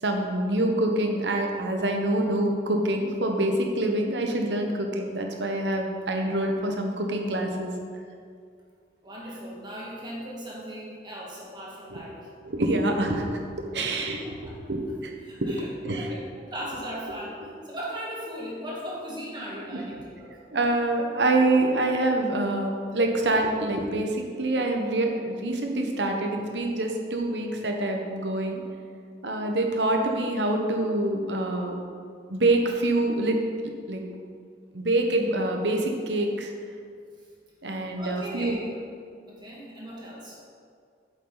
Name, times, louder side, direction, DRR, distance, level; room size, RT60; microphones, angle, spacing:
voice 1, 0.0-7.7 11.9-12.0 12.4-15.1 15.4-15.6 15.8-16.1 19.7-19.8 20.5-28.6 29.2-31.7 32.3-33.4 33.9-34.0 34.7-36.5 37.6-38.6, right 1 dB, 85° right, 3 dB, 1.1 m, -26 dB
voice 2, 9.0-12.3 13.8-13.9 14.2-14.6 15.2-15.7 15.9-20.4 38.0-38.7 39.3-40.4, equal, 25° right, -5 dB, 2.0 m, -38 dB
8.7 x 7.3 x 4.0 m, 2.2 s
head